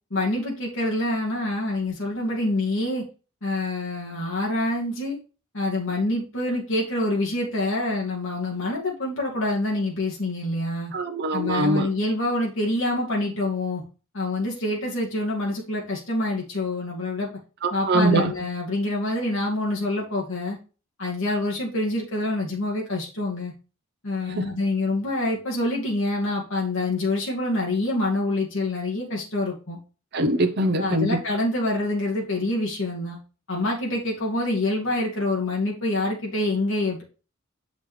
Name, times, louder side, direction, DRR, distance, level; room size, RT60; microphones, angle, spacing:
voice 1, 0.1-3.0 3.4-5.2 5.5-10.9 11.3-13.8 14.1-17.3 17.7-20.6 21.0-23.5 24.0-29.8 30.8-33.2 33.5-37.0, left 2 dB, 60° left, 2.2 m, -26 dB
voice 2, 10.9-11.9 17.6-18.3 24.4-24.5 30.1-31.1, right 1 dB, 50° right, 0.8 m, -22 dB
7.5 x 5.2 x 3.2 m
head